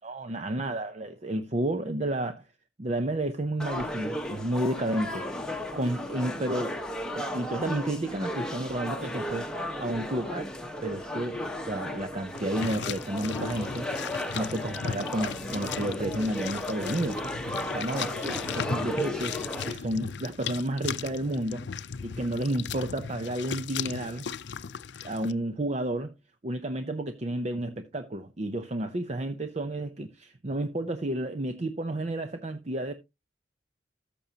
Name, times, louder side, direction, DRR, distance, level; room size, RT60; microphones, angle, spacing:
voice 1, 0.0-2.5 2.8-6.8 7.1-9.5 9.8-10.4 10.8-13.9 14.3-17.2 17.7-19.4 19.7-21.7 22.0-24.3 25.0-26.1 26.4-32.9, right 1 dB, 35° right, 0.6 m, -31 dB
sound 1, 3.6-19.7, left 1 dB, 5° left, 1.2 m, -35 dB
sound 2, 12.3-25.3, left 6 dB, 70° left, 0.5 m, -37 dB
14.0 x 6.9 x 2.8 m
head